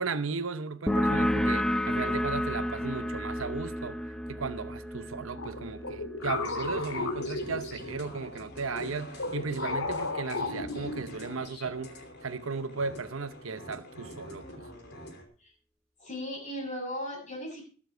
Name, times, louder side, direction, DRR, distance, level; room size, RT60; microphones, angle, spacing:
voice 1, 0.0-4.0 4.3-14.7, right 4 dB, 85° right, 0.9 m, -36 dB
sound 1, 0.9-8.1, left 1 dB, 5° left, 0.7 m, -31 dB
sound 2, 5.4-8.1 8.7-11.4, left 3 dB, 85° left, 2.4 m, -35 dB
sound 3, 6.2-15.3, equal, 55° left, 3.0 m, -46 dB
voice 2, 16.0-17.6, equal, 35° left, 7.2 m, -37 dB
21.0 x 7.5 x 4.5 m
head